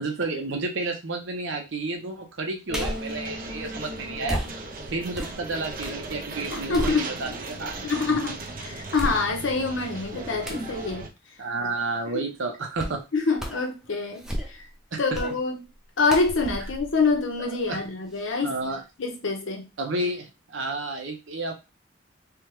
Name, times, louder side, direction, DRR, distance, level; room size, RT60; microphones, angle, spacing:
voice 1, 0.0-4.4 4.9-7.7 11.4-13.0 14.9-15.2 17.7-17.8 18.4-18.8 19.8-21.5, right 2 dB, 75° right, 0.8 m, -31 dB
sound 1, 2.7-3.2 4.2-6.0 6.4-7.5 8.0-8.1 8.9-9.6 10.4-10.7 12.8-13.0 13.4-13.7 14.1-14.7 15.1-15.4 16.1-17.7 18.1-18.2, equal, 5° right, 0.5 m, -33 dB
sound 2, 2.7-11.1, right 2 dB, 45° right, 0.5 m, -37 dB
voice 2, 6.5-7.1 7.8-11.1 13.1-14.3 15.0-15.6 16.0-18.5 19.0-19.7, left 4 dB, 80° left, 0.9 m, -26 dB
3.5 x 2.2 x 3.0 m
head